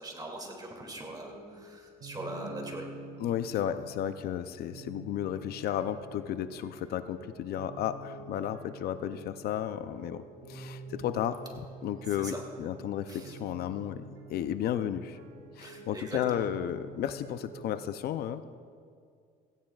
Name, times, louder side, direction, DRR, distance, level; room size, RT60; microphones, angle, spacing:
voice 1, 0.0-2.9 12.2-12.4 13.1-13.4 15.6-16.4, right 2 dB, 25° right, 1 dB, 2.6 m, -41 dB
sound 1, 1.1-17.8, right 2 dB, 80° right, 2.8 m, -48 dB
voice 2, 3.2-10.2 10.5-15.2 15.6-18.4, left 10 dB, 70° left, 11 dB, 0.5 m, -33 dB
18.0 x 15.5 x 2.4 m, 2.2 s
cardioid pair, 110°, 17 cm